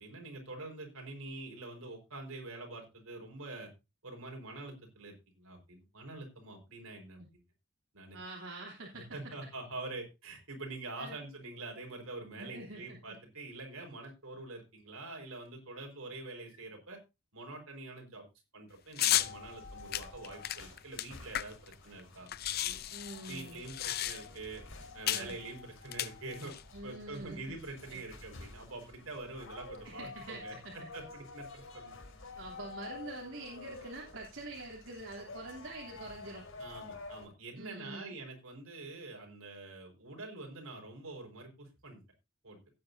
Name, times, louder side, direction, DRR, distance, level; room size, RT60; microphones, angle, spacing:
voice 1, 0.0-3.7 4.0-7.4 7.9-8.2 8.9-17.0 17.3-18.2 18.5-22.3 22.6-22.8 23.3-24.6 24.9-26.5 26.8-31.9 36.6-42.0 42.4-42.6, right 2 dB, 85° right, 2 dB, 4.7 m, -45 dB
voice 2, 8.1-9.0 11.0-11.2 12.4-13.1 22.9-23.6 25.1-25.4 26.7-27.4 27.9-28.0 29.8-30.9 32.3-36.5 37.6-38.1, right 2 dB, 70° right, -3 dB, 3.1 m, -45 dB
sound 1, 19.0-19.3 19.9-21.7 22.0-22.1 22.3-24.4 25.1-25.3 25.9-26.6, left 13 dB, 45° left, 0.5 m, -33 dB
sound 2, 19.1-37.3, left 3 dB, 65° left, 4.1 m, -50 dB
16.5 x 9.4 x 2.7 m, 0.25 s
head